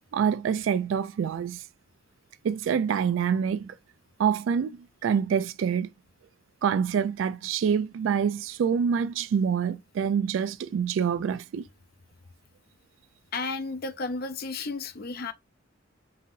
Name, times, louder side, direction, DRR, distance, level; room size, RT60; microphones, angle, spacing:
voice 1, 0.1-1.6 2.4-3.7 4.2-5.9 6.6-11.7, right 7 dB, 80° right, 0.3 m, -26 dB
voice 2, 13.3-15.3, left 3 dB, 50° left, 0.5 m, -33 dB
5.4 x 2.7 x 2.5 m
head